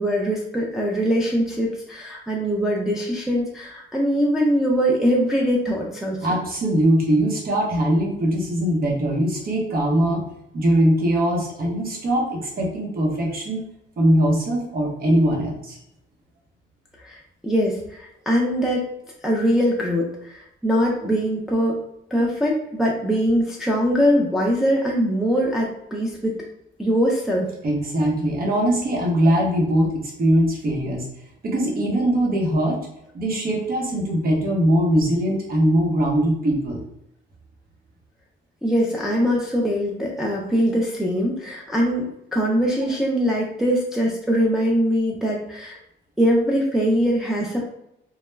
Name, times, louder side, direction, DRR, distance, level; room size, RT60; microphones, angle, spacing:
voice 1, 0.0-6.2 17.0-17.2 17.4-18.8 19.2-21.8 22.1-26.4 26.8-27.5 38.6-45.8 46.2-47.6, equal, ahead, -3 dB, 0.4 m, -22 dB
voice 2, 6.2-10.3 10.5-13.6 14.0-15.8 27.6-31.1 31.4-32.8 33.1-36.8, right 1 dB, 50° right, -1 dB, 0.9 m, -21 dB
2.2 x 2.1 x 3.1 m, 0.80 s
cardioid pair, 90°, 20 cm